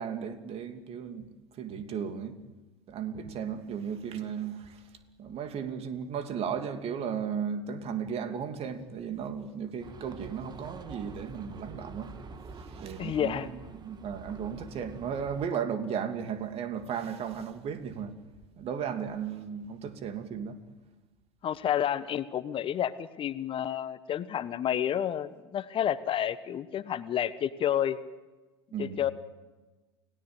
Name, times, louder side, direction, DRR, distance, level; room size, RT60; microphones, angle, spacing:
voice 1, 0.0-2.4 2.9-4.9 5.2-12.1 12.6-18.2 18.6-20.6 28.7-29.0, right 7 dB, 45° right, 2.8 m, -35 dB
sound 1, 9.8-15.5, right 4 dB, 30° right, 2.0 m, -46 dB
voice 2, 13.0-13.5 21.4-28.0 28.8-29.1, left 10 dB, 40° left, 1.2 m, -30 dB
29.5 x 17.5 x 8.0 m
hypercardioid pair, 75°, 14 cm